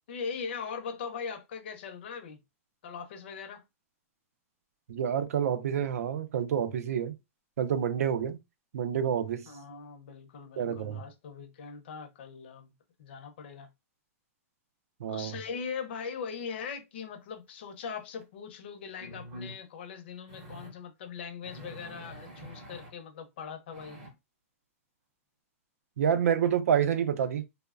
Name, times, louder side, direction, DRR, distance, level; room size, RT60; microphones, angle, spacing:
voice 1, 0.1-2.4 2.8-3.6 9.5-12.7 13.0-13.7 15.1-24.0, left 6 dB, 45° left, 0.5 m, -40 dB
voice 2, 4.9-7.1 7.6-8.4 8.7-9.5 10.6-11.0 15.0-15.3 26.0-27.5, right 8 dB, 80° right, 0.4 m, -28 dB
sound 1, 18.2-18.3 19.0-19.6 20.3-20.7 21.4-22.9 23.7-24.1, equal, 30° right, 0.7 m, -46 dB
3.0 x 2.0 x 2.3 m
supercardioid pair, 180°, 8 cm